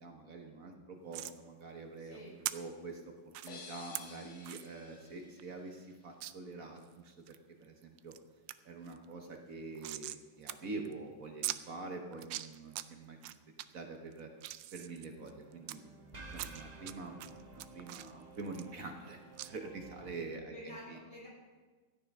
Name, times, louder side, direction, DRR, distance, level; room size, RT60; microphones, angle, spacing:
voice 1, 0.0-3.1 3.4-8.2 8.6-13.3 13.7-14.3 14.7-15.8 16.2-21.0, right 3 dB, 50° right, 3 dB, 1.5 m, -46 dB
sound 1, 1.1-1.4 2.4-2.5 3.3-3.5 3.9-4.0 4.4-4.7 5.1-5.2 5.4-5.5 6.2-6.3 6.8-7.4 7.8-8.2 8.5-8.6 8.9-10.2 10.5-10.6 10.8-10.9 11.4-11.6 12.1-12.8 13.2-13.6 14.1-15.8 16.3-16.9 17.2-19.1 19.4-19.5, right 14 dB, 90° right, 1.3 m, -41 dB
voice 2, 2.0-2.4 20.5-21.3, left 1 dB, 65° left, -5 dB, 6.0 m, -50 dB
sound 2, 3.5-6.2, left 5 dB, 45° left, 1.3 m, -53 dB
sound 3, 15.2-20.2, right 3 dB, 25° right, 1.3 m, -53 dB
13.5 x 9.7 x 5.3 m, 1.3 s
omnidirectional pair, 1.9 m